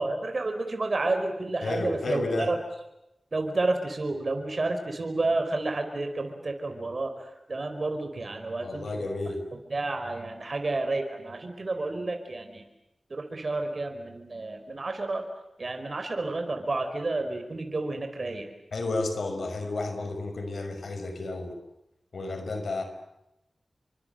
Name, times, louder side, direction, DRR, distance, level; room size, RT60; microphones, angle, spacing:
voice 1, 0.0-2.6 3.3-9.1 9.7-12.7 13.1-15.2 15.6-18.5, right 2 dB, 50° right, 5 dB, 4.9 m, -30 dB
voice 2, 1.6-2.5 8.6-9.4 18.7-21.5 22.1-22.8, left 2 dB, 75° left, 7 dB, 5.7 m, -31 dB
29.0 x 25.0 x 7.9 m, 0.88 s
wide cardioid pair, 65°, 0 cm